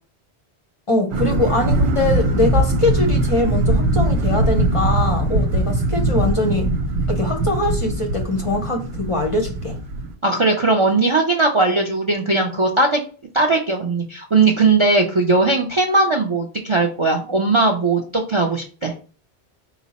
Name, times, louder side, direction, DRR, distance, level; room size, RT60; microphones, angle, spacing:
voice 1, 0.9-6.7 7.1-9.8, left 2 dB, 40° left, 0.5 m, -22 dB
sound 1, 1.1-10.1, right 1 dB, 80° right, 0.9 m, -21 dB
voice 2, 10.2-13.0 13.3-18.9, right 3 dB, 40° right, 0.4 m, -18 dB
4.7 x 2.1 x 4.0 m
omnidirectional pair, 1.1 m